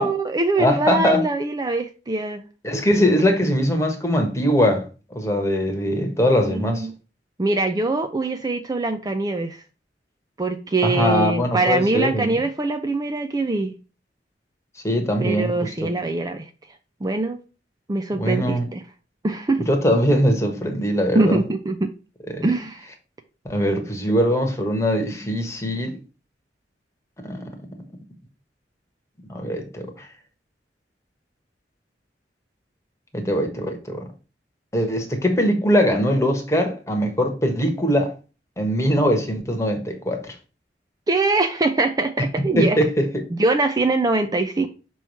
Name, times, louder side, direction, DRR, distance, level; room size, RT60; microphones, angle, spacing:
voice 1, 0.0-2.4 2.9-3.0 6.4-6.9 7.4-9.6 10.4-13.8 15.2-16.5 17.0-17.4 17.9-18.8 19.2-19.7 21.1-21.9 22.4-22.9 24.1-24.2 41.1-42.8 43.3-44.7, right 2 dB, 20° right, 0.4 m, -23 dB
voice 2, 0.6-1.2 2.6-4.8 5.1-6.9 10.8-12.3 14.8-15.5 15.8-15.9 18.2-18.7 19.7-21.4 22.3-22.5 23.4-26.0 27.2-27.4 29.3-30.1 33.1-34.0 34.7-38.1 38.6-40.3 42.6-42.9, equal, 15° left, 1.2 m, -21 dB
5.7 x 3.1 x 5.4 m
head